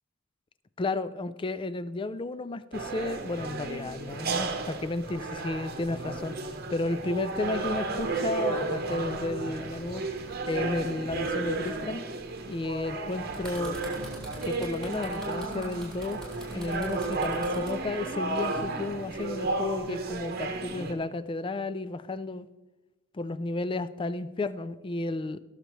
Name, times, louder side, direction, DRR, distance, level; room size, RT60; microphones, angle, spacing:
voice 1, 0.8-10.0 10.5-12.0 12.5-13.8 14.4-22.5 23.1-25.4, left 2 dB, 25° left, 15 dB, 0.3 m, -33 dB
sound 1, 2.7-20.9, right 3 dB, 50° right, 0.9 m, -33 dB
sound 2, 13.3-17.7 18.6-18.8, equal, 5° left, 3.3 m, -44 dB
18.5 x 6.6 x 3.1 m, 1.1 s
head